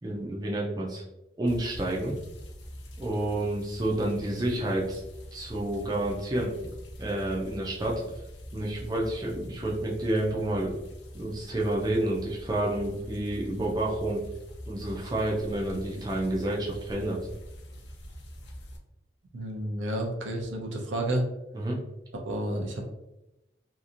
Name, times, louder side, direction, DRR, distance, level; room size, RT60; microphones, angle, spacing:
voice 1, 0.0-1.0 1.4-2.1 3.0-5.0 5.3-6.5 7.0-8.0 8.5-10.8 11.1-14.2 14.7-17.2 21.5-21.8, right 1 dB, 20° right, -3 dB, 0.4 m, -29 dB
sound 1, 1.5-18.8, equal, 75° left, 0.5 m, -44 dB
voice 2, 19.3-21.2 22.2-22.8, right 1 dB, 90° right, 1 dB, 0.6 m, -30 dB
2.8 x 2.5 x 2.4 m, 0.94 s
head